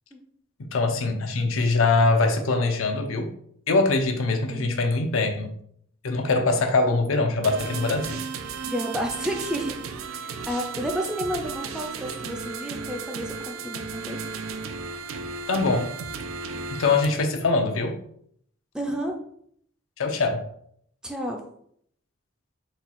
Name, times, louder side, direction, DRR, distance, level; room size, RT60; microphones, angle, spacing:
voice 1, 0.6-3.3 3.7-5.5 6.0-8.2 15.5-16.0 16.7-18.0 20.0-20.4, left 3 dB, 80° left, 0.6 m, -23 dB
sound 1, 7.4-17.0, right 5 dB, 90° right, 0.5 m, -34 dB
voice 2, 8.7-9.7 10.1-14.2 18.7-19.2 21.0-21.4, equal, 5° right, 0.4 m, -31 dB
4.3 x 2.3 x 4.1 m
head